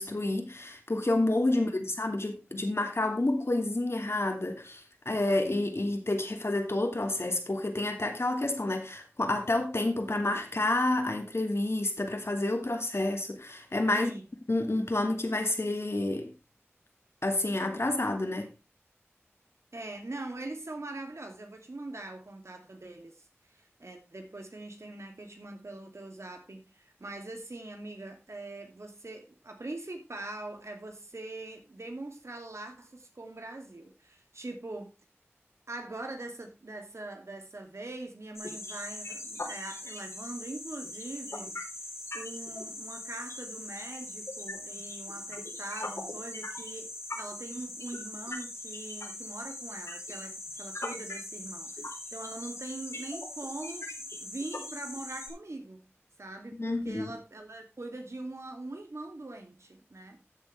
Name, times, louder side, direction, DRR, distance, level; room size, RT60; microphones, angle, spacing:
voice 1, 0.0-14.1 14.5-16.3 17.2-18.5 56.6-57.1, left 2 dB, 65° left, 2.3 m, -29 dB
voice 2, 1.5-1.9 13.9-14.2 19.7-23.2 23.5-35.0 35.7-41.6 42.1-53.9 54.2-55.9 56.2-60.2, right 2 dB, 85° right, 2.5 m, -42 dB
sound 1, 38.3-55.3, left 2 dB, 85° left, 3.9 m, -40 dB
14.5 x 6.9 x 3.3 m
wide cardioid pair, 40°, 5 cm